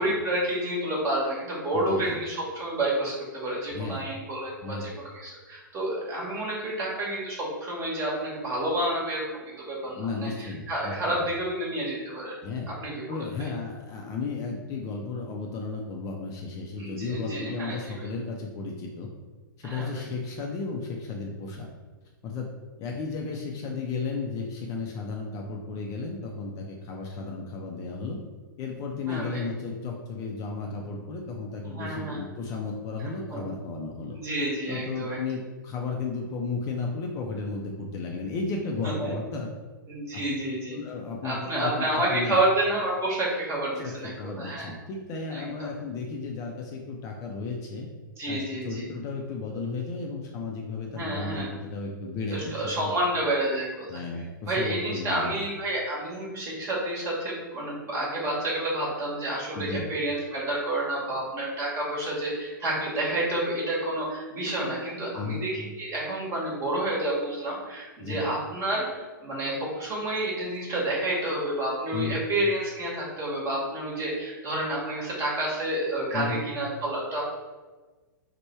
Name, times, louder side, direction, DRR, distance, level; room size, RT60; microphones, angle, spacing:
voice 1, 0.0-12.3 12.8-13.3 16.8-18.1 19.6-20.1 29.0-29.4 31.6-32.3 33.3-33.4 34.1-35.2 38.8-39.1 39.9-40.8 41.2-44.7 45.3-45.7 48.2-48.8 50.9-51.5 52.3-54.0 54.4-77.3, right 1 dB, 25° right, -4 dB, 1.2 m, -29 dB
voice 2, 1.7-2.2 3.7-4.0 4.6-4.9 9.9-11.3 12.4-12.7 13.1-19.1 19.6-21.7 22.2-22.5 22.8-28.2 28.6-34.2 34.7-39.5 40.1-40.2 40.7-42.4 43.7-47.9 48.3-52.9 53.9-55.5 59.5-59.9 65.1-65.4 68.0-68.2 71.9-72.2 76.1-76.4, left 4 dB, 30° left, 0 dB, 0.5 m, -34 dB
3.2 x 2.2 x 4.2 m, 1.3 s
hypercardioid pair, 115°, 11 cm